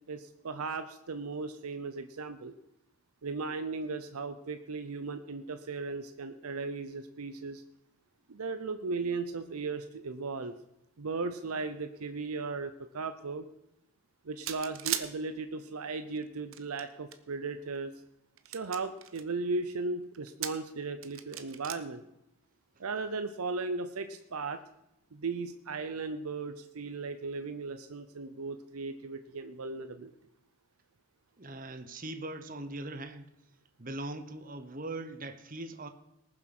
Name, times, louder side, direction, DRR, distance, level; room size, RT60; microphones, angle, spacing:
voice 1, 0.1-2.5 3.2-7.6 8.3-10.6 11.0-13.5 14.2-17.9 18.5-22.0 22.8-24.6 25.1-30.1, right 4 dB, 85° right, 9 dB, 0.7 m, -36 dB
sound 1, 14.5-15.1 16.2-17.2 17.8-17.9 18.4-19.2 20.1-20.7 21.0-21.7, right 11 dB, 65° right, 1.0 m, -36 dB
voice 2, 31.4-33.3 33.8-35.9, right 2 dB, 40° right, 10 dB, 1.0 m, -40 dB
19.0 x 7.5 x 6.0 m, 0.86 s
head